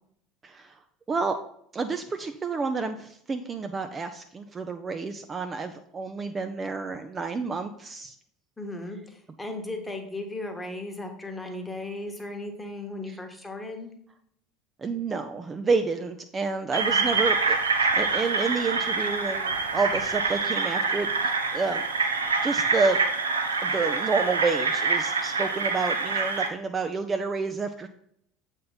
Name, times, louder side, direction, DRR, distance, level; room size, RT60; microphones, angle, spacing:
voice 1, 0.4-0.7 1.1-1.4 1.7-8.1 13.1-13.2 14.8-17.6 17.9-21.8 22.4-23.0 23.6-27.9, right 4 dB, 25° right, 6 dB, 0.5 m, -29 dB
voice 2, 8.6-13.9, left 2 dB, 10° left, 3 dB, 1.2 m, -36 dB
sound 1, 16.7-26.5, right 4 dB, 85° right, 0.6 m, -26 dB
7.6 x 3.6 x 4.0 m, 0.69 s
figure-of-eight pair, 70°, 0 cm